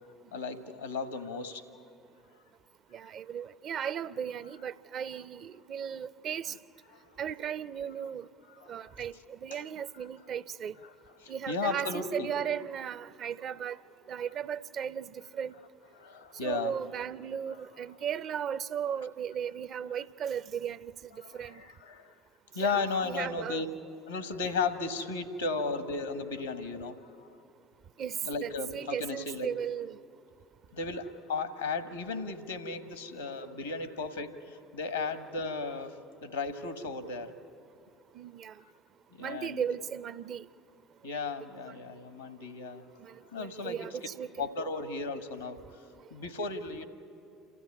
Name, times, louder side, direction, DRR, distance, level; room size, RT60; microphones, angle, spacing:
voice 1, 0.3-1.6 6.9-7.1 8.5-8.9 9.5-9.6 10.8-10.9 11.2-12.3 16.0-16.7 21.2-22.1 22.5-23.7 24.1-27.3 28.2-29.5 30.7-37.3 39.2-39.6 41.0-42.8 43.3-43.9 44.4-45.8 46.1-46.9, left 4 dB, 85° left, 10 dB, 1.3 m, -35 dB
voice 2, 2.9-6.5 7.2-8.3 8.7-10.8 11.3-13.8 14.1-15.5 16.4-20.9 21.3-21.6 22.6-23.6 28.0-30.0 38.1-38.6 39.2-40.5 43.0-44.5 46.7-46.8, right 8 dB, 50° right, 16 dB, 0.5 m, -36 dB
28.0 x 14.0 x 9.6 m, 2.6 s
figure-of-eight pair, 60°, 0 cm